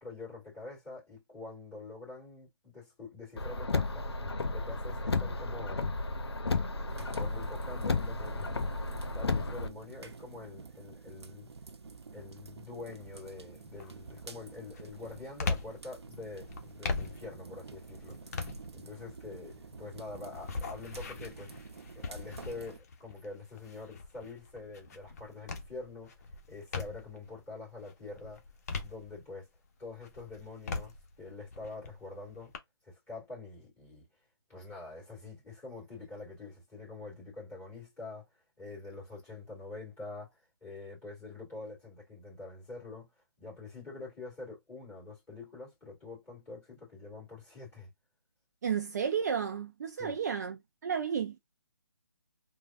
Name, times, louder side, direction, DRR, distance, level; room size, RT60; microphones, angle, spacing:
voice 1, 0.0-4.1 4.5-5.8 7.2-8.6 9.1-11.5 12.1-18.2 18.7-21.5 21.9-26.1 26.5-28.4 28.8-29.5 29.8-32.5 32.8-34.1 34.5-38.3 38.6-40.3 40.6-43.1 43.4-47.9 50.0-50.2, left 3 dB, 10° left, 2.1 m, -45 dB
Car, 3.4-9.7, left 3 dB, 75° left, 0.6 m, -33 dB
sound 1, 6.9-22.8, right 4 dB, 80° right, 0.6 m, -49 dB
sound 2, 12.9-13.3 13.7-27.3 27.7-29.6 30.0-32.6, left 4 dB, 40° left, 0.7 m, -41 dB
voice 2, 48.6-50.6 50.8-51.4, right 7 dB, 40° right, 0.4 m, -32 dB
3.3 x 2.2 x 2.4 m
figure-of-eight pair, 155°, 14 cm